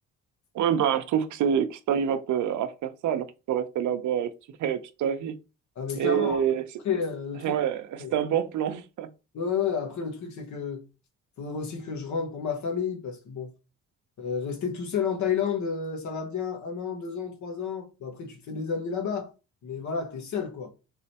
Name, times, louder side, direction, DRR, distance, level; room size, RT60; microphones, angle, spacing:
voice 1, 0.5-4.3 4.6-5.3 6.0-6.6 7.4-9.1, right 9 dB, 75° right, 0.7 m, -26 dB
voice 2, 5.7-6.4 6.8-7.5 8.0-8.1 9.3-10.8 11.4-13.5 14.2-19.3 19.6-20.7, left 6 dB, 70° left, 1.4 m, -31 dB
3.8 x 3.2 x 4.2 m
cardioid pair, 90°, 30 cm